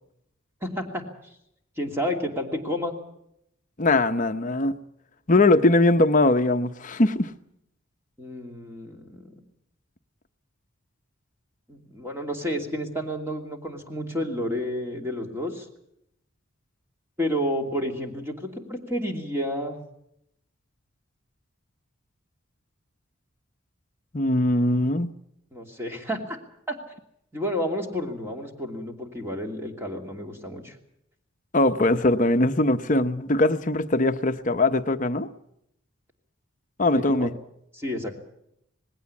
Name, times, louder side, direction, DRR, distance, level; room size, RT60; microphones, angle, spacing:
voice 1, 0.6-1.0 1.8-3.0 8.2-9.3 11.7-15.7 17.2-19.8 25.5-26.4 26.7-26.8 27.3-30.8 36.9-37.3 37.7-38.1, equal, 10° right, 2.7 m, -30 dB
voice 2, 3.8-4.8 5.3-7.3 24.1-25.1 31.5-35.3 36.8-37.3, left 2 dB, 35° left, 0.8 m, -21 dB
19.5 x 17.0 x 8.5 m
head